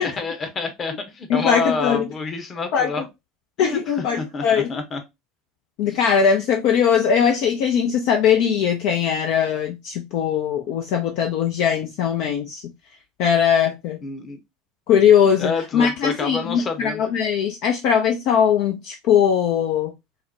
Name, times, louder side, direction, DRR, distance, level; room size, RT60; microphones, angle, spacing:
voice 1, 0.0-3.1 3.6-5.0 5.9-6.0 14.0-14.4 15.4-17.0, left 4 dB, 30° left, 0.9 m, -28 dB
voice 2, 1.3-2.1 2.7-3.1 3.6-4.7 5.8-12.6 13.2-14.0 14.9-19.9, left 7 dB, 55° left, 0.4 m, -20 dB
3.8 x 2.1 x 2.7 m
figure-of-eight pair, 75°, 0 cm